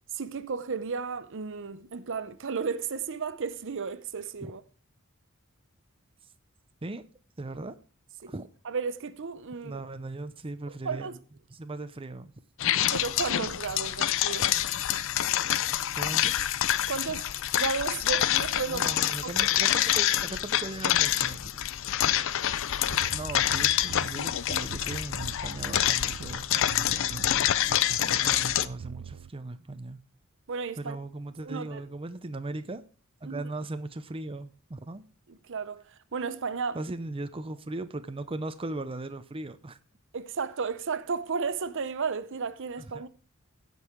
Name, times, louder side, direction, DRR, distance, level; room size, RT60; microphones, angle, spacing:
voice 1, 0.1-4.6 8.2-8.3 8.7-9.8 10.8-11.1 12.9-14.5 16.9-18.9 19.7-19.8 30.5-31.0 31.4-31.8 33.2-33.4 35.5-36.8 40.1-43.1, right 5 dB, 60° right, 0.7 m, -33 dB
voice 2, 7.4-7.8 8.3-8.5 9.6-11.1 11.5-12.3 16.0-16.5 18.7-21.6 23.1-27.5 28.0-30.0 30.8-32.8 33.2-35.0 36.7-39.8 42.8-43.1, right 2 dB, 25° right, 0.6 m, -38 dB
sound 1, 12.6-28.7, left 11 dB, 65° left, 0.5 m, -27 dB
sound 2, 22.9-29.3, right 6 dB, 90° right, 0.4 m, -42 dB
16.5 x 5.5 x 4.6 m
head